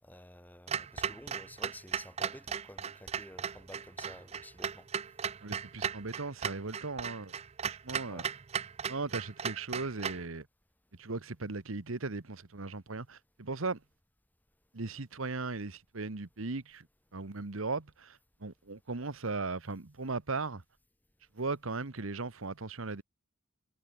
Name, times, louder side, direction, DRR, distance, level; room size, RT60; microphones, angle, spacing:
voice 1, 0.0-4.9 8.1-8.3, left 1 dB, 10° left, 7.4 m, -51 dB
Clock, 0.7-10.3, right 7 dB, 30° right, 0.4 m, -37 dB
voice 2, 5.4-7.3 7.6-8.2 8.9-10.5 11.0-13.8 14.7-16.9 17.1-20.6 21.3-23.0, right 3 dB, 80° right, 1.3 m, -37 dB
head